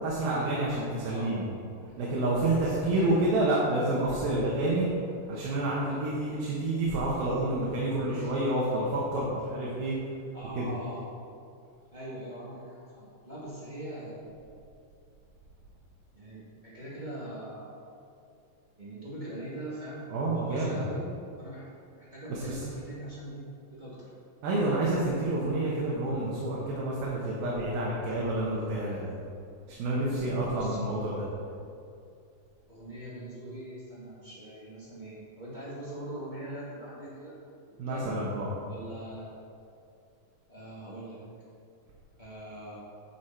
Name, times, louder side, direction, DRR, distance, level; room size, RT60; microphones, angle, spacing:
voice 1, 0.0-1.4 2.0-4.9 5.3-10.1 10.6-10.7 20.1-20.8 22.3-22.6 24.4-29.1 29.7-31.2 37.8-38.5, right 2 dB, 90° right, -5 dB, 3.0 m, -29 dB
voice 2, 8.0-8.3 10.3-11.0 11.9-14.3 16.1-17.8 18.8-21.1 21.4-21.7 21.9-24.1 30.5-30.9 32.7-37.3 37.9-38.1 38.6-39.3 40.5-41.2 42.2-42.8, right 1 dB, 40° right, -8 dB, 0.6 m, -42 dB
10.5 x 6.2 x 4.4 m, 2.5 s
omnidirectional pair, 4.0 m